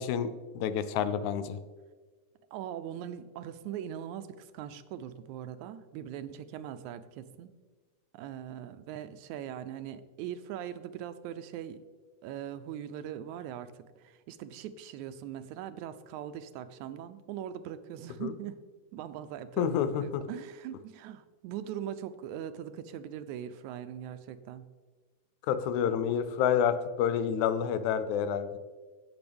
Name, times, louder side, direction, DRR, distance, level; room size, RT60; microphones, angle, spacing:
voice 1, 0.0-1.6 18.2-18.3 19.6-20.2 25.5-28.6, left 8 dB, 90° left, 12 dB, 2.1 m, -29 dB
voice 2, 2.5-7.5 8.1-11.8 12.2-18.6 18.9-24.7, right 10 dB, 85° right, 11 dB, 2.0 m, -41 dB
16.5 x 6.1 x 3.4 m, 1.4 s
omnidirectional pair, 3.3 m